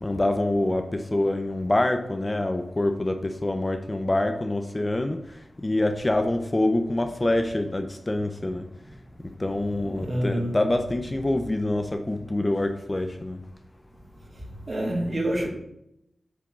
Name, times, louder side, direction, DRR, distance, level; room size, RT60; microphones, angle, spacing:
voice 1, 0.0-5.2 5.6-8.6 9.4-13.4, left 1 dB, 25° left, 0.6 m, -26 dB
voice 2, 10.0-10.6 14.7-15.5, right 1 dB, 45° right, 2.0 m, -26 dB
8.2 x 3.7 x 6.0 m
wide cardioid pair, 80°, 0 cm